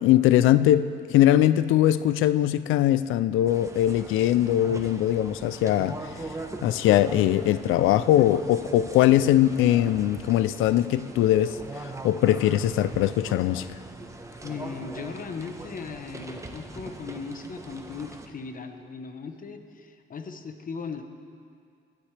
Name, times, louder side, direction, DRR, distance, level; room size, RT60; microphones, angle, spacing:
voice 1, 0.0-6.0 6.6-11.6 12.0-13.7, left 12 dB, 90° left, 15 dB, 0.4 m, -21 dB
sound 1, 3.5-18.3, right 2 dB, 15° right, 1.1 m, -41 dB
voice 2, 14.4-21.1, left 5 dB, 45° left, 7 dB, 1.1 m, -38 dB
21.5 x 12.0 x 3.3 m, 2.4 s
cardioid pair, 90°, 20 cm